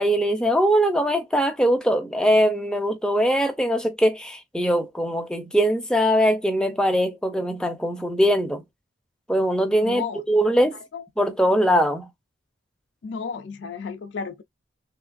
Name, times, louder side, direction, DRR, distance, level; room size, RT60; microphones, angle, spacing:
voice 1, 0.0-8.6 9.3-10.8 11.2-12.1, equal, 5° left, 0.5 m, -21 dB
voice 2, 9.8-10.5 10.9-11.1 13.0-14.4, left 5 dB, 70° left, 0.4 m, -33 dB
3.1 x 3.0 x 2.5 m
head